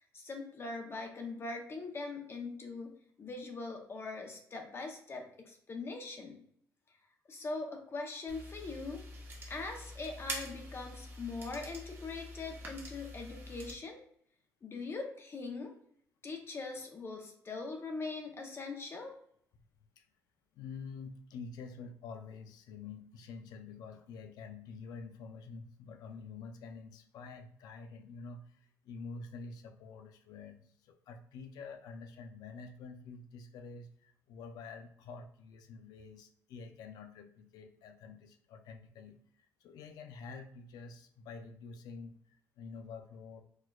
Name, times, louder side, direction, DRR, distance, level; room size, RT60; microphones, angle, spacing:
voice 1, 0.1-6.4 7.3-9.0 9.5-14.0 14.6-15.7 16.2-19.1, left 3 dB, 40° left, 3 dB, 0.7 m, -41 dB
sound 1, 8.3-13.7, equal, 35° right, 0.9 m, -45 dB
voice 2, 20.6-43.4, left 4 dB, 80° left, 7 dB, 0.4 m, -48 dB
4.3 x 2.2 x 2.3 m, 0.67 s
cardioid pair, 80°, 7 cm